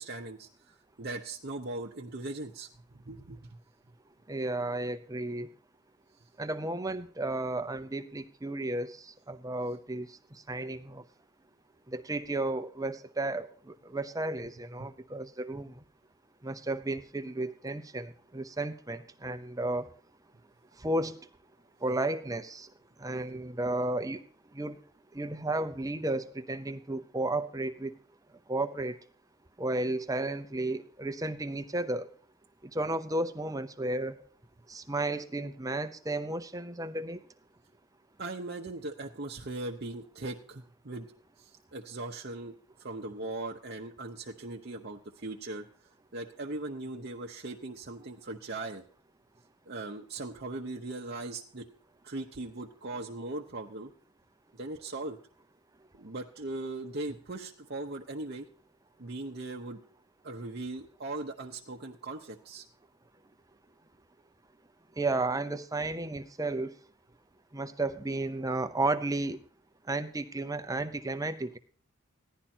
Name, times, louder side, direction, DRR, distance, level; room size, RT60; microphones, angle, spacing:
voice 1, 0.0-3.6 38.2-41.1 41.4-42.5 42.8-45.7 46.1-48.8 49.7-51.7 52.0-53.9 54.5-55.2 56.0-58.5 59.0-59.8 60.2-62.7, right 2 dB, 50° right, 1 dB, 0.9 m, -39 dB
voice 2, 4.3-5.5 6.4-11.0 11.9-15.8 16.4-19.9 20.8-21.2 21.8-22.7 23.0-24.2 24.5-24.8 25.1-27.9 28.5-29.0 29.6-32.1 32.6-34.3 34.7-37.2 65.0-66.8 67.5-69.4 69.9-71.6, right 2 dB, 15° right, 9 dB, 0.7 m, -33 dB
15.5 x 11.5 x 4.4 m, 0.44 s
head